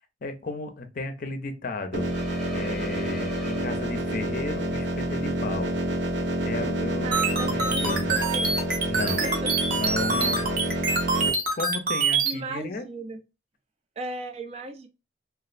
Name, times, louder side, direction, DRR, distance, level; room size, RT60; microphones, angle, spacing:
voice 1, 0.2-2.1 2.5-5.8 6.4-8.2 8.8-9.3 9.7-11.0 11.5-12.8, left 3 dB, 50° left, 0.5 m, -34 dB
sound 1, 1.9-11.3, right 1 dB, 85° right, 0.7 m, -28 dB
sound 2, 2.0-4.4, left 2 dB, ahead, 0.7 m, -42 dB
voice 2, 7.0-8.5 9.1-9.6 10.1-10.5 12.2-13.2 14.0-14.9, right 2 dB, 35° right, 0.3 m, -36 dB
sound 3, 7.1-12.3, right 4 dB, 55° right, 0.8 m, -25 dB
3.0 x 2.3 x 2.4 m
head